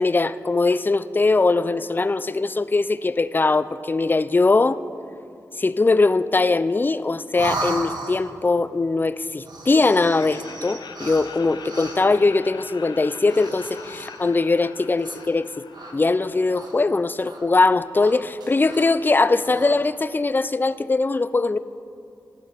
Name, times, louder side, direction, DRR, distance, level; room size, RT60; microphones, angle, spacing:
voice 1, 0.0-4.8 5.6-15.5 15.9-21.6, left 3 dB, 30° left, 15 dB, 0.3 m, -21 dB
sound 1, 7.3-8.5 9.4-12.2 13.2-14.3 15.0-15.4 15.7-16.9 17.2-17.5 17.9-19.0 19.3-19.7, right 2 dB, 75° right, 1.3 m, -36 dB
Laughter, 10.1-17.1, left 6 dB, 90° left, 0.5 m, -42 dB
18.0 x 7.8 x 3.5 m, 2.5 s
wide cardioid pair, 75°, 7 cm